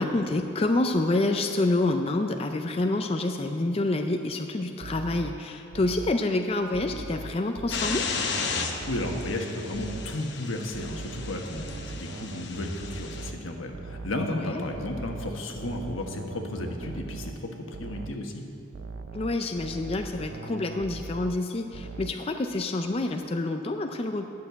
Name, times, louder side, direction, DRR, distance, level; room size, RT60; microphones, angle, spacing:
voice 1, 0.0-8.0 14.3-14.6 19.1-24.3, left 2 dB, 30° left, 5 dB, 0.4 m, -27 dB
sound 1, 4.8-6.3 6.7-9.5 9.7-10.2 10.7-14.3 14.7-17.5 17.7-18.2 18.7-21.5 21.7-22.3, right 3 dB, 60° right, 0.4 m, -40 dB
sound 2, 7.7-13.3, left 5 dB, 60° left, 0.9 m, -34 dB
voice 2, 8.9-18.4, left 1 dB, 90° left, 3 dB, 1.2 m, -33 dB
11.0 x 6.6 x 8.0 m, 2.8 s
head